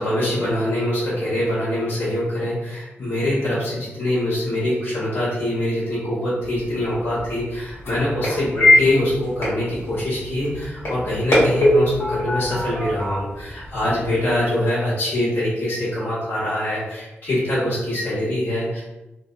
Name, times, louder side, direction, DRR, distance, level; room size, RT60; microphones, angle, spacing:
voice 1, 0.0-18.8, left 1 dB, 60° left, -12 dB, 1.3 m, -24 dB
sound 1, 6.4-14.3, left 1 dB, 80° left, 1.2 m, -23 dB
2.6 x 2.0 x 2.4 m, 1.0 s
wide cardioid pair, 170°, 4 cm